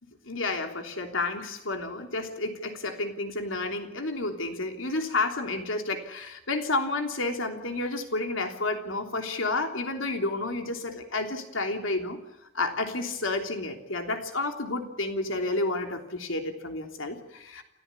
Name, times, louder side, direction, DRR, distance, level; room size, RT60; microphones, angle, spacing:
voice 1, 0.2-12.2 12.5-17.6, left 2 dB, 85° left, 5 dB, 3.3 m, -30 dB
28.5 x 14.0 x 9.7 m, 0.92 s
head